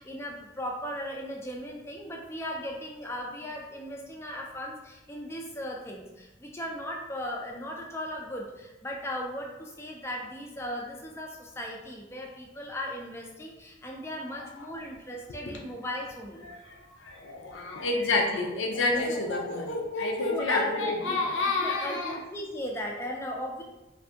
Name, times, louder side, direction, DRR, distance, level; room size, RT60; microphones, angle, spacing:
voice 1, 0.0-16.5 18.9-19.3 20.3-23.6, equal, 15° left, 0 dB, 0.4 m, -37 dB
voice 2, 17.0-22.2, left 3 dB, 75° left, 1 dB, 0.6 m, -28 dB
2.6 x 2.6 x 3.4 m, 1.0 s
head